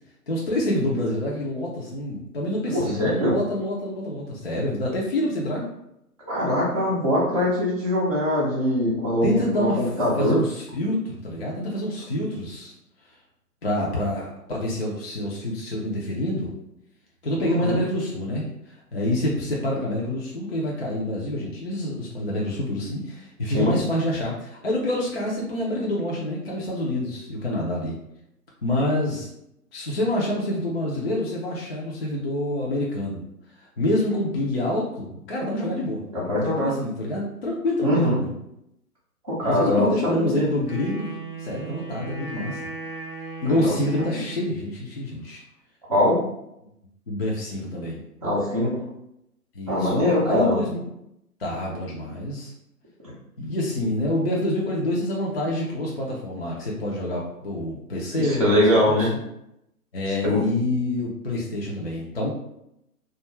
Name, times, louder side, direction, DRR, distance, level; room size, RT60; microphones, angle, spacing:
voice 1, 0.3-5.7 9.2-9.8 10.2-12.7 13.6-16.5 17.2-28.0 28.6-29.3 29.7-33.2 33.6-36.0 36.4-38.3 39.4-42.6 43.4-45.4 47.1-48.0 49.5-50.9 51.4-52.5 53.4-59.1 59.9-62.3, left 1 dB, 45° left, -3 dB, 0.4 m, -27 dB
voice 2, 2.7-3.3 6.3-10.4 17.4-17.8 23.5-23.8 36.1-36.7 37.8-38.2 39.2-40.5 43.4-43.7 45.9-46.2 48.2-48.8 49.7-50.6 58.1-59.1 60.2-60.4, left 1 dB, 25° right, -9 dB, 0.4 m, -22 dB
Wind instrument woodwind instrument, 40.6-44.6, right 3 dB, 80° left, 0.9 m, -37 dB
2.3 x 2.2 x 3.0 m, 0.81 s
figure-of-eight pair, 135°, 47 cm